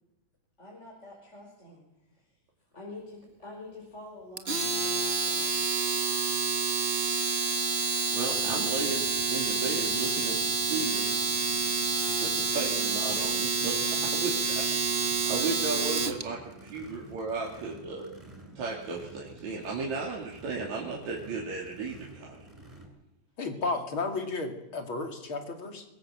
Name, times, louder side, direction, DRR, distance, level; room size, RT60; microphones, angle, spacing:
voice 1, 0.6-2.3 2.7-5.6, left 2 dB, 20° left, -2 dB, 5.2 m, -47 dB
Domestic sounds home sounds, 4.4-16.2, right 4 dB, 40° right, 0.9 m, -28 dB
voice 2, 7.9-11.1 12.2-14.6 14.9-18.1 18.6-22.5, right 4 dB, 60° right, -2 dB, 4.1 m, -35 dB
Race car auto racing / Idling / Accelerating revving vroom, 8.3-22.9, right 2 dB, 10° right, 6.3 m, -51 dB
voice 3, 23.4-25.8, left 3 dB, 40° left, 5 dB, 3.2 m, -33 dB
24.0 x 22.0 x 7.7 m, 0.88 s
omnidirectional pair, 3.7 m